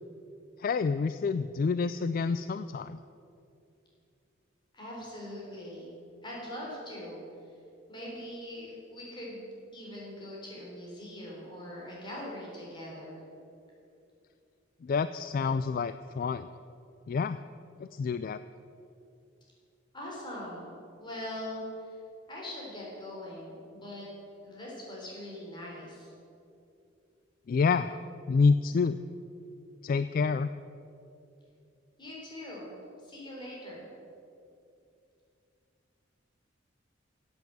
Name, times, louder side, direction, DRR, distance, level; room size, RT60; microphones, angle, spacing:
voice 1, 0.6-3.0 14.8-16.5 17.1-17.4 17.8-18.4 27.5-28.0 28.3-29.0 29.8-30.5, left 5 dB, 45° left, 13 dB, 0.3 m, -28 dB
voice 2, 4.7-5.9 6.2-7.2 7.9-13.2 19.9-20.7 21.0-22.0 22.3-24.0 24.4-26.1 32.0-32.7 33.0-33.8, left 1 dB, 25° left, -4 dB, 3.8 m, -42 dB
12.0 x 8.2 x 7.8 m, 2.6 s
head